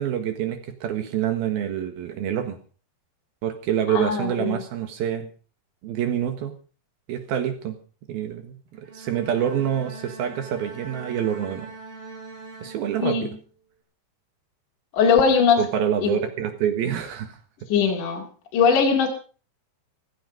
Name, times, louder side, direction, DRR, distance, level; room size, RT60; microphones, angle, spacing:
voice 1, 0.0-2.6 3.4-5.3 5.8-6.6 7.1-7.7 8.1-11.7 12.6-13.3 15.6-17.4, right 9 dB, 70° right, 8 dB, 3.3 m, -26 dB
voice 2, 3.9-4.6 13.0-13.4 14.9-15.7 16.0-16.2 17.7-18.3 18.5-19.1, left 6 dB, 55° left, 1 dB, 3.4 m, -20 dB
Bowed string instrument, 8.7-13.4, right 3 dB, 35° right, 3.7 m, -42 dB
15.5 x 15.5 x 5.1 m, 0.39 s
omnidirectional pair, 4.7 m